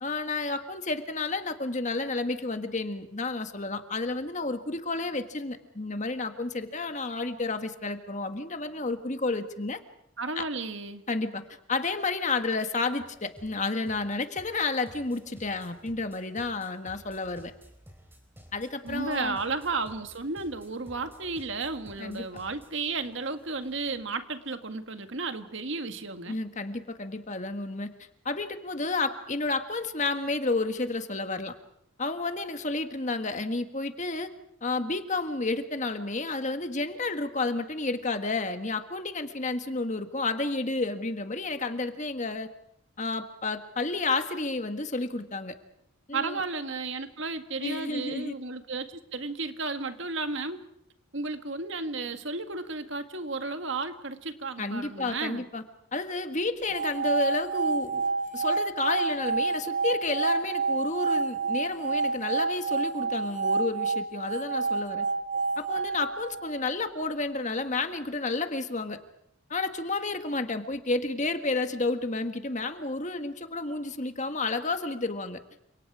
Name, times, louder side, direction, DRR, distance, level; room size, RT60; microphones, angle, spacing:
voice 1, 0.0-9.8 10.3-10.4 11.1-17.5 18.5-19.4 22.0-22.2 26.3-27.9 28.2-31.5 32.0-34.3 34.6-42.5 43.0-45.5 46.1-46.4 47.6-48.3 54.6-55.6 55.9-58.0 58.3-65.1 65.6-69.0 69.5-75.4, left 3 dB, 35° left, 8 dB, 1.7 m, -31 dB
voice 2, 10.2-11.0 18.8-26.4 46.1-50.6 51.1-55.4, right 3 dB, 60° right, 8 dB, 1.8 m, -33 dB
sound 1, 13.0-24.1, equal, 10° right, 4.0 m, -53 dB
sound 2, 56.6-66.8, right 4 dB, 35° right, 0.9 m, -29 dB
Piano, 65.8-67.4, equal, 5° left, 7.5 m, -61 dB
30.0 x 27.0 x 4.9 m, 0.74 s
head